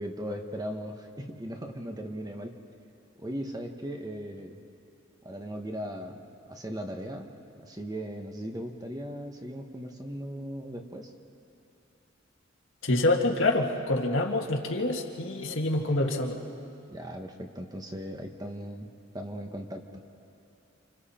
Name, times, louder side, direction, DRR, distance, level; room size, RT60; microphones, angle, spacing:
voice 1, 0.0-2.5 3.2-4.6 5.2-6.2 6.5-7.3 7.6-11.1 16.9-18.9 19.1-20.0, equal, 20° right, 4 dB, 1.3 m, -38 dB
voice 2, 12.8-16.4, left 2 dB, 70° left, 1 dB, 2.0 m, -26 dB
29.5 x 27.5 x 4.4 m, 2.8 s
head